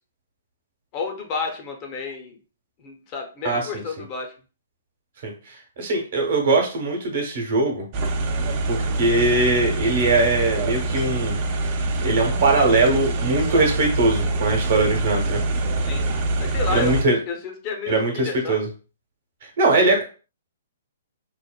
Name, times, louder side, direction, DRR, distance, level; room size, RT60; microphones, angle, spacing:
voice 1, 0.9-2.4 2.8-4.3 15.8-16.0 16.4-17.0 17.3-18.7, left 4 dB, 35° left, 2 dB, 0.6 m, -31 dB
voice 2, 3.4-3.8 5.2-5.3 5.8-7.9 8.7-11.4 12.0-15.4 16.7-17.2 17.9-18.7 19.6-20.0, right 2 dB, 60° right, 1 dB, 0.9 m, -21 dB
sound 1, 7.9-17.0, right 2 dB, 40° right, 0.4 m, -25 dB
3.0 x 2.1 x 2.3 m, 0.36 s
hypercardioid pair, 125°, 0 cm